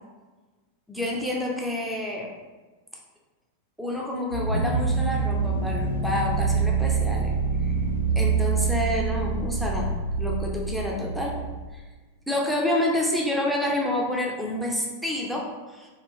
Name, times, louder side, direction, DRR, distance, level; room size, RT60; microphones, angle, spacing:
voice 1, 0.9-2.3 3.8-7.3 7.6-7.8 8.2-9.9 10.2-11.4 11.7-11.8 12.3-15.9, left 1 dB, ahead, -2 dB, 0.6 m, -28 dB
sound 1, 4.3-9.1, equal, 75° right, 0.3 m, -36 dB
sound 2, 4.4-11.6, right 5 dB, 80° left, 0.4 m, -26 dB
3.3 x 2.4 x 3.5 m, 1.3 s
figure-of-eight pair, 90°, 0 cm